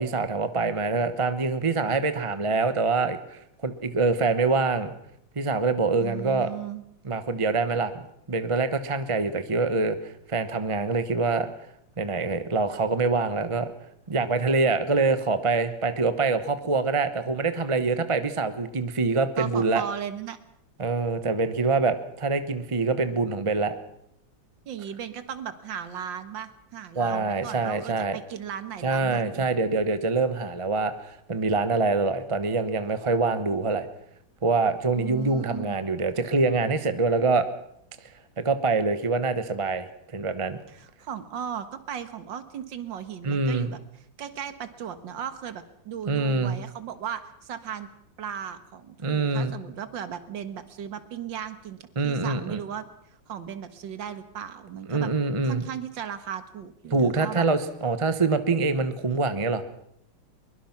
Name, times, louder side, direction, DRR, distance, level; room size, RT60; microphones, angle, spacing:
voice 1, 0.0-4.9 5.4-6.5 7.0-7.9 8.3-11.5 12.0-13.7 14.1-19.8 20.8-23.7 27.0-28.2 28.8-33.9 34.4-37.5 38.4-40.6 43.2-43.7 46.1-46.6 49.0-49.5 52.0-52.6 54.9-55.7 56.9-59.6, right 3 dB, 25° right, 10 dB, 0.7 m, -25 dB
voice 2, 6.0-6.8 19.4-20.4 24.7-29.5 35.0-35.8 40.7-43.8 44.2-47.9 48.2-52.9 53.3-55.1 55.4-57.5, right 8 dB, 65° right, 10 dB, 2.1 m, -36 dB
23.0 x 22.0 x 6.0 m, 0.75 s
omnidirectional pair, 2.2 m